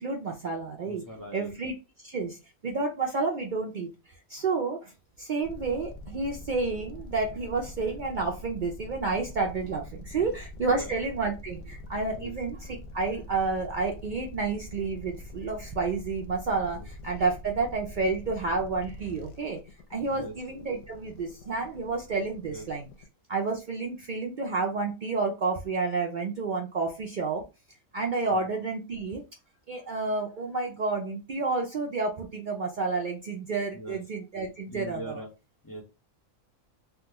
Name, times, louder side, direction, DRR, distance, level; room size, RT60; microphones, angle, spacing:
voice 1, 0.0-1.1 1.3-1.7 2.0-2.4 2.6-3.9 4.3-4.9 5.2-12.6 12.9-19.6 19.9-22.9 23.3-27.4 27.9-29.2 29.7-35.2, right 4 dB, 75° right, 1 dB, 0.4 m, -30 dB
voice 2, 0.9-1.5 10.1-10.4 10.7-11.0 12.1-12.3 16.7-16.9 20.0-20.3 22.5-22.7 28.3-28.5 33.7-34.0 34.7-35.3 35.6-35.8, right 1 dB, 20° left, 0 dB, 0.6 m, -42 dB
sound 1, 5.4-23.1, left 1 dB, 80° left, 1.0 m, -44 dB
3.5 x 2.2 x 2.8 m, 0.27 s
omnidirectional pair, 1.4 m